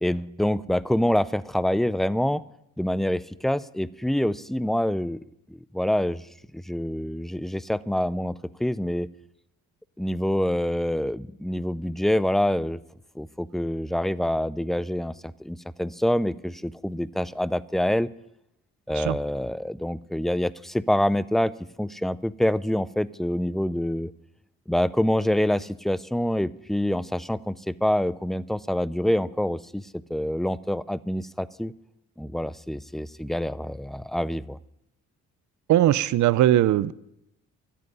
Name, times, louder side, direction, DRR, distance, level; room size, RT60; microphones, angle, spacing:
voice 1, 0.0-2.4 2.8-5.2 5.5-6.2 6.5-9.1 10.0-12.8 13.2-18.1 18.9-21.5 21.8-24.1 24.7-31.7 32.2-34.6, left 1 dB, ahead, 0.4 m, -26 dB
voice 2, 35.7-36.9, right 13 dB, 70° right, 0.6 m, -20 dB
13.5 x 7.8 x 9.8 m
cardioid pair, 90°, 30 cm